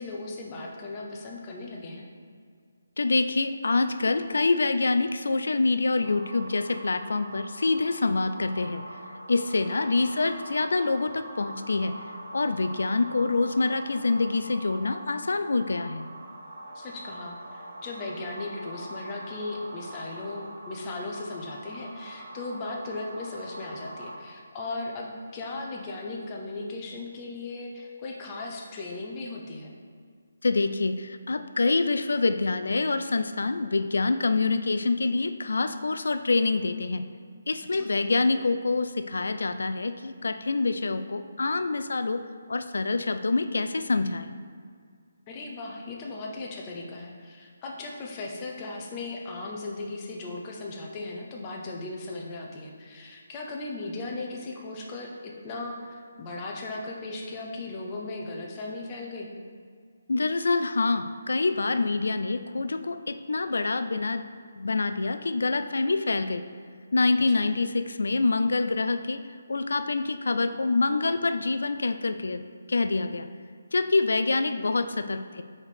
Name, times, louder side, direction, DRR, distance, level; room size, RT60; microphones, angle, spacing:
voice 1, 0.0-2.1 9.7-9.8 16.7-29.7 37.7-37.9 45.3-59.3 67.3-67.4, left 2 dB, 15° left, -1 dB, 0.5 m, -37 dB
voice 2, 3.0-9.0 9.3-11.9 12.3-16.1 30.4-37.0 37.5-42.2 42.5-44.3 60.1-64.3 64.6-66.4 66.9-69.2 69.5-72.4 72.7-73.3 73.7-75.4, left 3 dB, 75° left, 9 dB, 0.3 m, -26 dB
sound 1, 6.0-24.2, right 1 dB, 55° right, 0.7 m, -43 dB
4.9 x 4.1 x 4.9 m, 2.1 s
hypercardioid pair, 175°, 0 cm